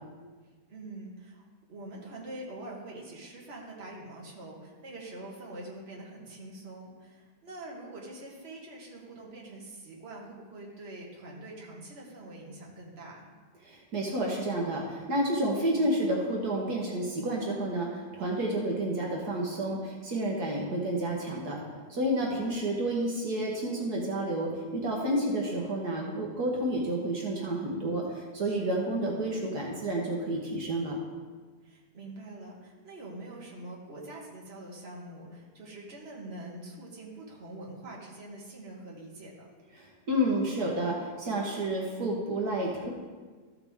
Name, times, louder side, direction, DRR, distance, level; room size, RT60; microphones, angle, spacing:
voice 1, 0.7-13.3 18.4-18.6 22.2-22.5 28.4-28.7 31.6-39.5, right 2 dB, 40° right, -3 dB, 1.8 m, -45 dB
voice 2, 13.6-21.6 21.9-31.0 39.8-42.9, right 1 dB, 70° right, -2 dB, 1.7 m, -30 dB
13.5 x 5.8 x 3.5 m, 1.5 s
omnidirectional pair, 1.8 m